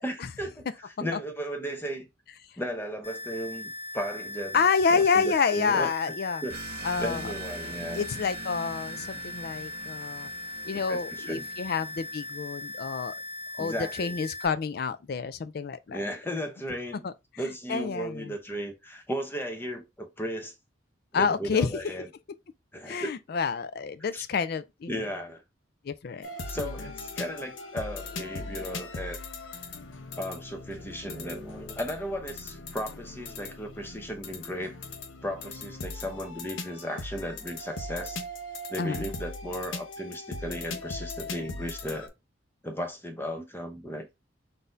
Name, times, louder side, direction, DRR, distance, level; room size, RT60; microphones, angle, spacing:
voice 1, 0.0-0.7 1.0-2.1 2.6-4.6 4.9-5.9 6.4-6.6 7.0-8.0 10.7-11.5 13.6-14.1 15.9-17.1 17.4-20.5 21.1-22.1 22.7-23.1 24.1-24.2 24.9-25.4 26.5-29.2 30.2-34.7 35.2-38.2 38.7-42.1 42.6-44.1, equal, 10° left, 0.7 m, -35 dB
sound 1, 3.0-14.5, left 2 dB, 35° left, 0.9 m, -39 dB
voice 2, 4.5-6.4 6.8-7.3 7.9-10.3 10.6-13.1 13.6-16.0 17.0-17.1 17.7-18.3 21.1-21.8 22.9-25.1 25.8-26.3 26.6-26.7 38.8-39.1, left 5 dB, 55° left, 0.4 m, -28 dB
sound 2, 6.5-12.8, right 4 dB, 50° right, 0.5 m, -44 dB
sound 3, 26.2-42.1, left 2 dB, 80° left, 0.7 m, -39 dB
4.0 x 2.7 x 3.7 m
head